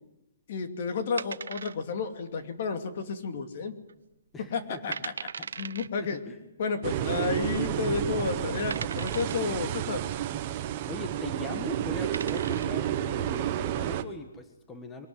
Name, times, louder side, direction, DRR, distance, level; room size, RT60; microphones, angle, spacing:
voice 1, 0.5-3.7 4.4-5.1 5.6-6.2 6.6-10.1, left 5 dB, 45° left, 7 dB, 2.6 m, -31 dB
sound 1, 1.2-2.1 2.4-2.5 3.1-3.5 3.9-4.0 4.6-4.7 4.9-5.9 7.0-7.1 7.7-7.8 8.7-9.5 11.4-11.5 11.9-12.8, right 6 dB, 90° right, 0.9 m, -38 dB
voice 2, 4.3-4.8 5.4-5.5 6.0-6.4 10.9-15.1, left 2 dB, 10° left, 6 dB, 1.6 m, -40 dB
sound 2, 6.8-14.0, right 11 dB, 30° right, 1.2 m, -31 dB
23.0 x 19.0 x 9.7 m, 0.91 s
hypercardioid pair, 165°, 0 cm